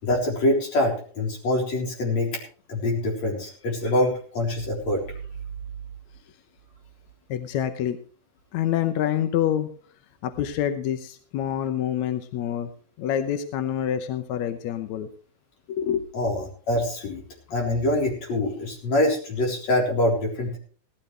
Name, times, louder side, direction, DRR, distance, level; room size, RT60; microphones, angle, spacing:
voice 1, 0.0-2.4 2.7-5.0 16.1-17.2 17.5-20.6, left 1 dB, 50° left, 0 dB, 5.1 m, -25 dB
voice 2, 7.3-8.0 8.5-9.7 10.2-12.7 13.0-15.1 15.7-16.1, left 10 dB, 70° left, 9 dB, 1.8 m, -26 dB
17.5 x 13.0 x 3.3 m, 0.43 s
omnidirectional pair, 4.2 m